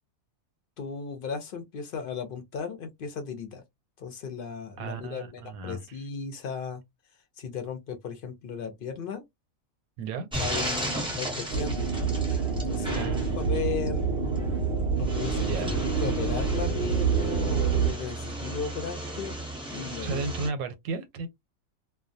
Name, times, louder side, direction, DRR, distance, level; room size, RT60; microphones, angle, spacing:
voice 1, 0.8-3.6 4.0-6.8 7.4-9.2 10.4-11.9 12.7-14.0 15.0-19.3 19.7-20.2, left 6 dB, 55° left, 0.6 m, -36 dB
voice 2, 4.8-6.0 10.0-10.3 12.9-13.3 15.4-15.8 20.0-21.3, right 4 dB, 90° right, 1.0 m, -34 dB
sound 1, 10.3-20.5, right 1 dB, 5° right, 0.6 m, -36 dB
sound 2, 11.5-17.9, right 5 dB, 60° right, 0.6 m, -27 dB
2.2 x 2.2 x 2.6 m
omnidirectional pair, 1.5 m